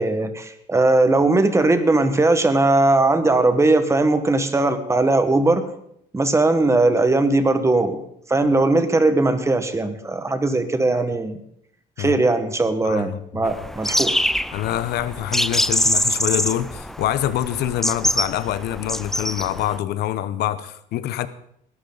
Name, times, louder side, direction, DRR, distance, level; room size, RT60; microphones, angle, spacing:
voice 1, 0.0-5.6 6.1-8.0 8.3-11.4 12.0-14.1, right 2 dB, 15° right, 1.5 m, -19 dB
voice 2, 12.8-13.5 14.5-21.3, left 12 dB, 75° left, 0.9 m, -25 dB
sound 1, 13.4-19.8, left 1 dB, ahead, 0.4 m, -24 dB
20.5 x 12.0 x 4.0 m
cardioid pair, 110°, 17 cm